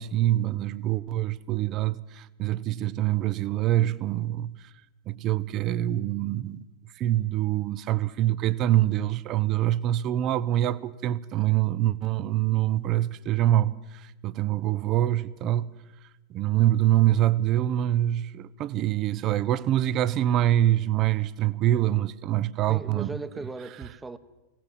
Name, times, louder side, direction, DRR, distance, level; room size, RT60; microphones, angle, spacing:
voice 1, 0.0-4.5 5.1-6.7 7.0-15.7 16.3-23.2, right 13 dB, 35° right, 0.8 m, -25 dB
voice 2, 22.7-24.2, right 3 dB, 10° right, 1.2 m, -37 dB
22.5 x 17.5 x 7.5 m
figure-of-eight pair, 90°, 0 cm